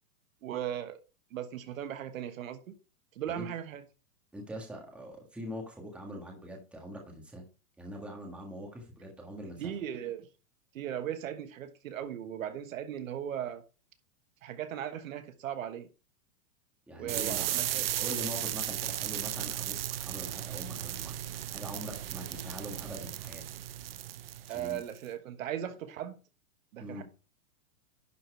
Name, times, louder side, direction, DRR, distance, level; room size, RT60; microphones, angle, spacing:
voice 1, 0.4-1.0 1.3-2.8 3.1-3.8 9.6-10.3 10.7-13.6 14.4-15.9 16.9-17.9 24.5-26.2 26.7-27.0, right 10 dB, 60° right, 1.3 m, -37 dB
voice 2, 4.3-7.5 7.8-9.7 16.9-17.6 18.0-21.2 21.5-23.4 24.5-24.8 26.8-27.0, equal, 5° right, 1.7 m, -43 dB
sound 1, 17.1-25.0, right 12 dB, 40° right, 0.5 m, -35 dB
11.0 x 4.6 x 4.6 m
supercardioid pair, 165°, 45 cm